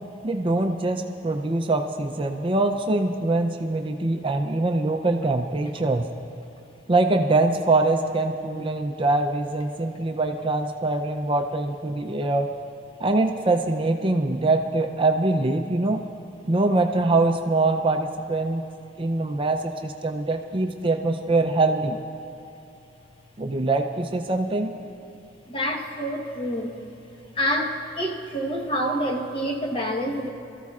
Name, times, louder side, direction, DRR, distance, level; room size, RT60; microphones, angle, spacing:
voice 1, 0.2-6.1 6.9-12.5 13.0-16.0 16.5-18.6 19.0-22.0 23.4-24.7, right 2 dB, 30° right, 4 dB, 0.5 m, -23 dB
voice 2, 25.5-26.8 27.1-30.3, equal, 30° left, 1 dB, 1.2 m, -27 dB
25.0 x 14.0 x 2.4 m, 2.7 s
head